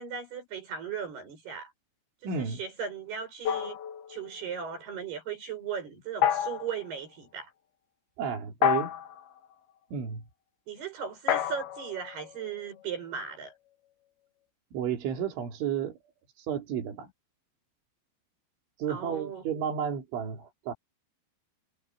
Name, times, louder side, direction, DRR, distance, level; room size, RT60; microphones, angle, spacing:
voice 1, 0.0-1.7 2.2-3.8 4.1-7.5 10.7-13.5 18.9-19.4, right 7 dB, 55° right, 9.3 m, -37 dB
voice 2, 2.2-2.6 8.2-9.0 9.9-10.2 14.7-16.0 16.4-17.1 18.8-20.7, right 8 dB, 85° right, 5.7 m, -32 dB
sound 1, 3.4-4.5 6.2-6.8 8.6-9.3 11.3-13.0, left 9 dB, 65° left, 3.0 m, -30 dB
omnidirectional pair, 5.3 m